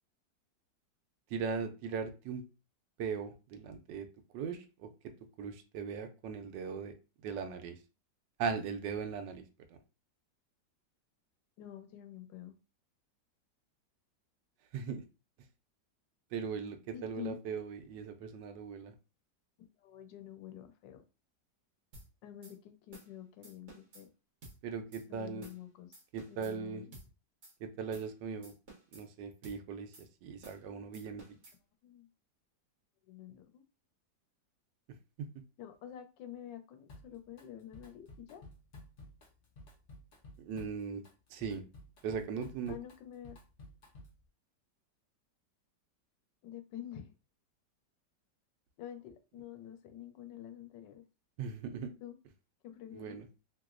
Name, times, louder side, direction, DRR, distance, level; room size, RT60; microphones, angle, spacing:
voice 1, 1.3-2.4 3.0-4.1 4.3-4.9 5.4-6.9 7.2-7.8 8.4-9.4 14.7-15.0 16.3-18.9 24.6-25.5 26.1-26.8 27.6-28.5 28.9-31.2 40.4-41.0 41.3-41.6 42.0-42.7 51.4-51.9 52.9-53.2, right 6 dB, 80° right, 7 dB, 1.2 m, -39 dB
voice 2, 11.6-12.6 16.9-17.4 19.6-21.0 22.2-24.1 25.1-26.0 26.3-26.9 31.3-31.4 31.8-32.1 33.1-33.6 35.6-38.4 42.7-43.4 46.4-47.1 48.8-51.0 52.0-52.2 52.6-53.2, left 11 dB, 90° left, 8 dB, 1.3 m, -48 dB
sound 1, 21.9-22.1 22.4-22.5 22.9-23.1 23.4-24.0 24.4-24.6 24.9-25.0 25.4-25.6 25.9-26.5 26.9-27.1 27.4-27.5 27.9-28.1 28.4-29.0 29.4-29.6 29.9-30.1 30.4-30.6 30.9-31.6, right 2 dB, 45° right, 1.3 m, -54 dB
Drum kit, 36.9-37.4 37.7-44.3, left 1 dB, 50° left, 0.7 m, -54 dB
3.3 x 2.9 x 2.4 m, 0.31 s
omnidirectional pair, 1.9 m